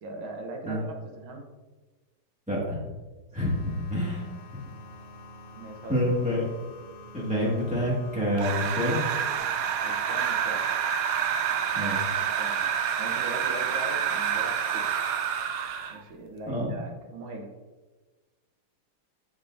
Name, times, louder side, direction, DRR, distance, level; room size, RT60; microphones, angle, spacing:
voice 1, 0.0-1.5 3.9-4.0 5.5-6.0 9.8-10.6 12.2-12.7 13.0-14.9 15.9-17.5, right 2 dB, 70° right, 2 dB, 1.7 m, -40 dB
voice 2, 2.5-2.8 3.3-4.3 5.9-6.5 7.1-9.0 11.7-12.0 16.5-16.7, left 1 dB, 5° right, -6 dB, 1.7 m, -27 dB
sound 1, 3.4-9.4, left 2 dB, 80° left, 1.8 m, -47 dB
sound 2, 8.4-16.0, right 8 dB, 90° right, 0.8 m, -28 dB
7.7 x 6.7 x 2.6 m, 1.3 s
omnidirectional pair, 2.4 m